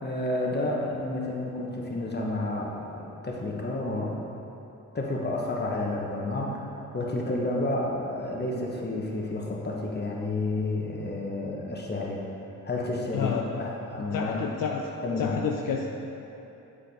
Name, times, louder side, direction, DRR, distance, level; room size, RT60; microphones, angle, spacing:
voice 1, 0.0-4.2 4.9-6.6 6.9-12.2 12.6-14.5 15.0-15.4, left 2 dB, 25° left, -1 dB, 1.2 m, -30 dB
voice 2, 13.1-13.6 14.0-14.9 15.2-15.8, left 7 dB, 65° left, 1 dB, 0.5 m, -30 dB
7.6 x 4.9 x 3.6 m, 3.0 s
supercardioid pair, 50°, 37 cm